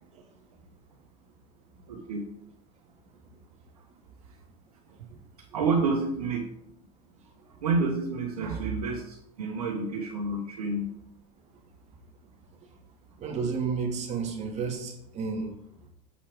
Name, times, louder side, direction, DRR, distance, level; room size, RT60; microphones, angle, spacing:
voice 1, 1.9-2.2 5.5-6.5 7.6-10.9, right 3 dB, 90° right, -2 dB, 1.5 m, -29 dB
voice 2, 13.2-15.5, right 5 dB, 35° right, 1 dB, 2.3 m, -31 dB
7.7 x 5.6 x 5.2 m, 0.75 s
hypercardioid pair, 100°, 19 cm